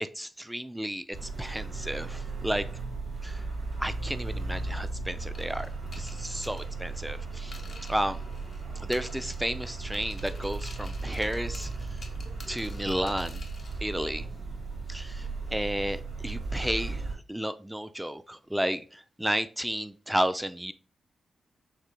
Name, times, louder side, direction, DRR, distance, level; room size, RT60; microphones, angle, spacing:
voice 1, 0.0-2.7 3.2-3.4 3.8-5.7 5.9-7.6 7.9-8.2 8.8-11.9 12.5-13.4 13.8-14.3 14.9-20.7, equal, 5° right, 0.4 m, -32 dB
sound 1, 1.1-17.1, right 3 dB, 60° right, 1.9 m, -36 dB
sound 2, 5.3-8.6 8.9-9.6 9.9-13.8, left 4 dB, 50° left, 1.1 m, -50 dB
6.5 x 3.2 x 2.2 m
cardioid pair, 70°, 0 cm